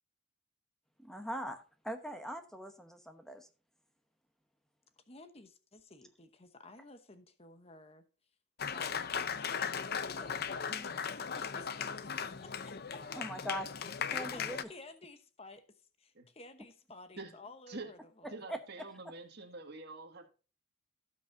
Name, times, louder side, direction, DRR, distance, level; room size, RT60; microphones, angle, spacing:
voice 1, 1.0-3.5 13.1-13.7 14.1-14.7 18.5-18.6, equal, ahead, 0.9 m, -41 dB
voice 2, 5.1-8.0 8.6-11.1 11.3-12.5 12.9-13.0 13.8-14.4 14.7-18.3, left 2 dB, 30° left, 1.0 m, -53 dB
Applause, 8.6-14.6, left 7 dB, 45° left, 0.6 m, -37 dB
voice 3, 18.3-20.3, right 3 dB, 50° right, 1.9 m, -46 dB
16.5 x 6.2 x 2.7 m
head